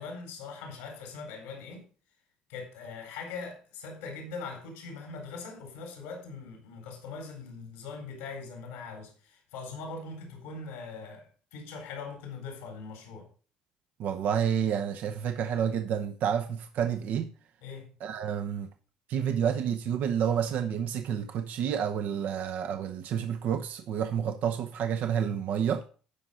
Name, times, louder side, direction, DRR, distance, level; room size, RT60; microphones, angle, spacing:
voice 1, 0.0-1.8 2.5-11.3 11.5-13.3 17.6-17.9, left 4 dB, 90° left, 3.8 m, -41 dB
voice 2, 14.0-17.3 18.0-18.7 19.1-25.8, right 8 dB, 65° right, 0.8 m, -29 dB
12.0 x 5.0 x 5.6 m
supercardioid pair, 70°, 3 cm